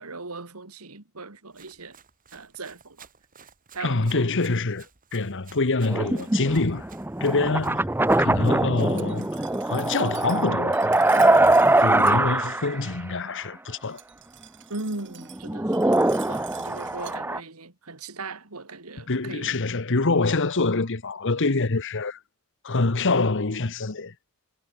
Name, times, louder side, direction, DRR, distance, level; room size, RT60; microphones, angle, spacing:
voice 1, 0.0-2.0 2.3-3.1 3.7-4.3 14.7-19.5, right 3 dB, 85° right, 2.8 m, -38 dB
Run, 1.5-9.4, right 7 dB, 40° right, 5.1 m, -54 dB
voice 2, 3.8-4.8 5.1-6.9 7.2-7.9 8.2-9.4 9.7-10.7 11.0-11.4 11.8-14.0 19.1-22.2 22.6-24.1, left 3 dB, 60° left, 1.3 m, -25 dB
sound 1, 5.9-12.9 13.3-13.4 15.2-17.4, right 2 dB, 10° right, 0.8 m, -22 dB
Glass, 8.8-12.2 13.8-17.2, right 13 dB, 55° right, 5.3 m, -47 dB
head